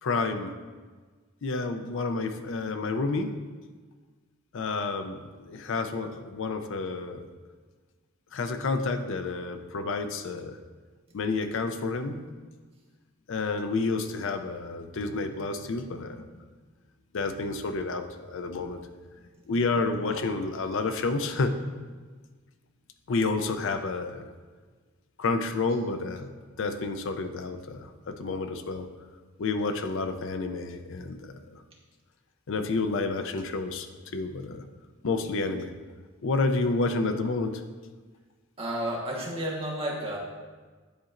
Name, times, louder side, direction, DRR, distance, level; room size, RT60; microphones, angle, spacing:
voice 1, 0.0-0.6 1.4-3.3 4.5-7.3 8.3-10.6 11.1-12.3 13.3-16.2 17.1-18.8 19.5-21.6 23.1-24.3 25.2-26.3 26.6-28.9 29.4-31.6 32.5-33.9 34.1-34.6 35.0-35.7 36.2-37.6, left 3 dB, 65° left, 8 dB, 0.5 m, -30 dB
voice 2, 38.6-40.2, right 1 dB, 30° right, -4 dB, 1.3 m, -31 dB
10.0 x 4.1 x 2.5 m, 1.4 s
head